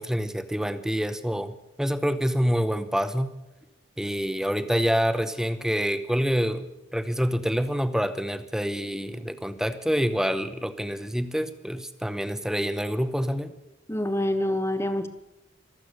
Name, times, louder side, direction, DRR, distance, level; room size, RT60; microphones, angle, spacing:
voice 1, 0.0-3.3 4.0-6.7 6.9-13.5, equal, 5° right, 11 dB, 0.8 m, -27 dB
voice 2, 13.9-15.1, left 1 dB, 15° left, 9 dB, 1.1 m, -26 dB
25.0 x 8.5 x 6.7 m, 0.95 s
head